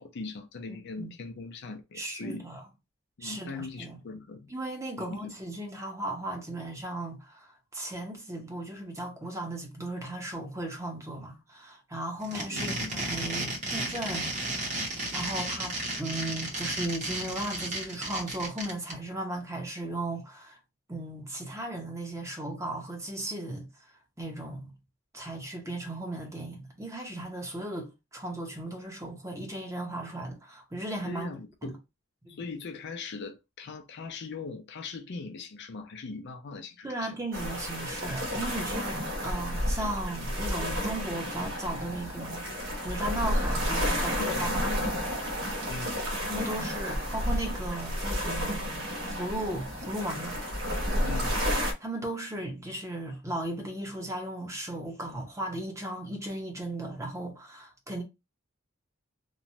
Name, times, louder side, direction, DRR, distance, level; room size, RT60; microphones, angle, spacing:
voice 1, 0.0-2.5 3.2-4.5 5.0-5.3 12.5-13.0 31.0-31.8 32.3-37.2 44.0-44.9 45.7-46.0 51.0-51.4, left 4 dB, 55° left, 0.5 m, -40 dB
voice 2, 0.7-1.1 1.9-2.6 3.2-4.0 4.5-14.3 15.1-20.6 20.9-23.7 24.2-24.7 25.1-31.3 32.2-32.4 36.8-42.5 42.8-44.9 46.2-50.4 51.0-51.1 51.8-58.0, right 1 dB, 15° right, 0.7 m, -36 dB
sound 1, 12.2-18.9, right 2 dB, 35° right, 1.0 m, -33 dB
sound 2, 37.3-51.7, equal, 65° right, 0.9 m, -31 dB
3.0 x 2.2 x 2.6 m
head